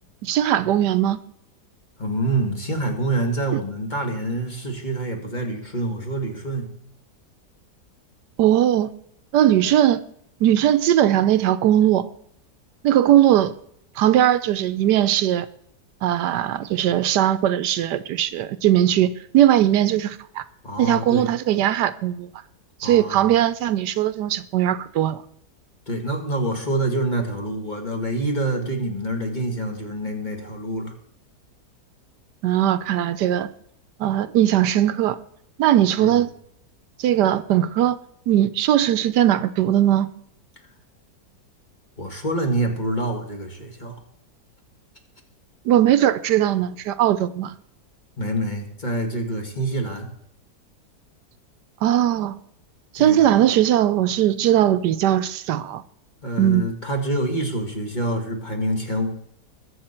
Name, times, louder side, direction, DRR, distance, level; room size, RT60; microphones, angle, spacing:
voice 1, 0.2-1.2 3.5-3.6 8.4-8.9 9.3-10.0 10.4-12.1 12.8-13.5 14.0-15.5 16.0-20.4 20.8-22.3 22.8-25.2 32.4-33.5 34.0-35.2 35.6-36.3 37.0-38.0 38.3-40.1 45.7-47.5 51.8-52.4 52.9-55.8 56.4-56.7, right 11 dB, 80° right, 1.2 m, -19 dB
voice 2, 2.0-6.7 20.6-21.3 22.8-23.3 25.9-30.9 36.0-36.2 42.0-44.0 46.0-46.1 48.2-50.1 53.0-53.4 56.2-59.1, right 1 dB, 25° left, 2.2 m, -26 dB
21.5 x 7.5 x 4.3 m
omnidirectional pair, 1.8 m